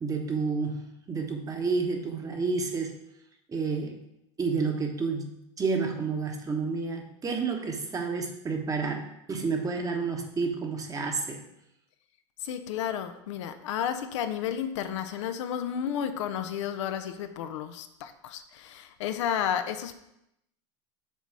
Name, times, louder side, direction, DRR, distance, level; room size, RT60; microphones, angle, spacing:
voice 1, 0.0-2.9 3.5-4.0 4.4-5.3 5.6-11.4, right 4 dB, 20° right, 3 dB, 1.1 m, -30 dB
voice 2, 12.4-20.0, left 9 dB, 75° left, 9 dB, 0.6 m, -32 dB
6.4 x 4.0 x 4.7 m, 0.83 s
hypercardioid pair, 105°, 16 cm